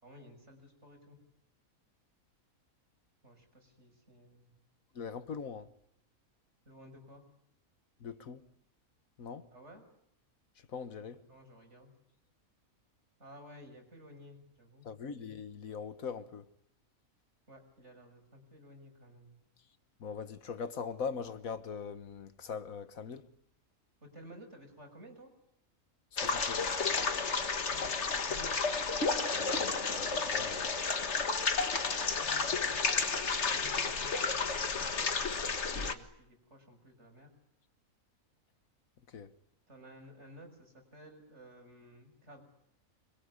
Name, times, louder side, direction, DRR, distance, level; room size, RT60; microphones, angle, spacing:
voice 1, 0.0-1.2 3.2-4.5 6.6-7.2 9.5-9.8 11.3-11.9 13.2-14.9 17.5-19.4 24.0-25.3 27.2-28.5 32.2-34.7 35.6-37.3 39.7-42.4, equal, 50° right, 6.6 m, -54 dB
voice 2, 4.9-5.7 8.0-8.4 9.2-9.5 10.7-11.2 14.8-16.5 20.0-23.3 26.1-26.7 29.3-30.7 39.1-39.3, left 6 dB, 75° left, 1.7 m, -41 dB
sound 1, 26.2-35.9, left 4 dB, 55° left, 1.9 m, -32 dB
26.0 x 23.0 x 9.8 m
omnidirectional pair, 1.5 m